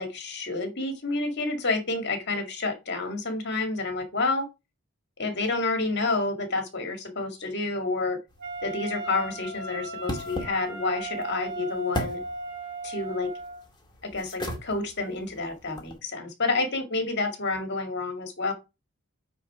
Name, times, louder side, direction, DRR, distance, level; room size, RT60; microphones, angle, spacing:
voice 1, 0.0-4.4 5.2-8.2 8.6-12.2 12.8-13.3 14.0-18.5, left 3 dB, 50° left, 6 dB, 2.0 m, -29 dB
sound 1, 8.3-16.0, equal, 20° left, 1.8 m, -39 dB
Wind instrument woodwind instrument, 8.4-13.6, right 2 dB, 50° right, 2.3 m, -37 dB
9.0 x 3.9 x 4.6 m, 0.25 s
head